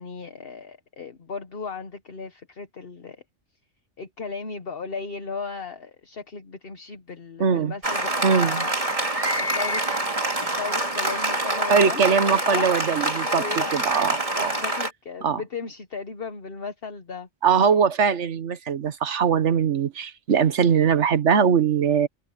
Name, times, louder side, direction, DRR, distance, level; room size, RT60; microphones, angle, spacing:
voice 1, 0.0-3.2 4.0-8.7 9.2-9.8 10.4-12.0 12.5-12.8 13.3-13.8 14.4-17.3, left 5 dB, 50° left, 1.3 m, -35 dB
voice 2, 7.4-7.7 8.2-8.7 11.7-14.5 15.2-15.4 17.4-22.1, right 6 dB, 70° right, 1.4 m, -21 dB
Applause, 7.8-14.9, right 1 dB, 30° right, 2.5 m, -26 dB
omnidirectional pair, 1.2 m